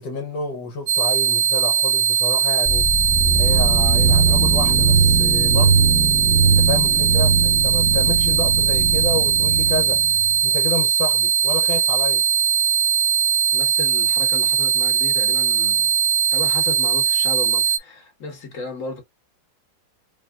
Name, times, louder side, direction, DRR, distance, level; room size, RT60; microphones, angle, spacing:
voice 1, 0.0-5.9 6.4-12.2, left 3 dB, 75° left, 1.6 m, -29 dB
sound 1, 0.9-17.8, right 9 dB, 75° right, 0.8 m, -19 dB
sound 2, 2.7-10.5, right 4 dB, 10° left, 0.6 m, -20 dB
voice 2, 13.5-15.9 16.3-19.0, left 3 dB, 45° left, 1.9 m, -33 dB
4.8 x 2.8 x 2.4 m
omnidirectional pair, 2.0 m